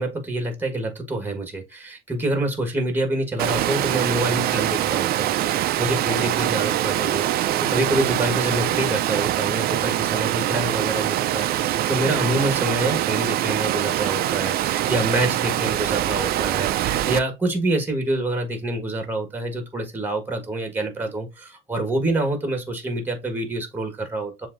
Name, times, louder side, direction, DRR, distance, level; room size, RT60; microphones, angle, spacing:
voice 1, 0.0-7.4 7.7-24.5, right 1 dB, 10° right, 1.4 m, -26 dB
Water, 3.4-17.2, right 13 dB, 65° right, 0.4 m, -23 dB
7.1 x 2.7 x 2.5 m
cardioid pair, 110°, 17 cm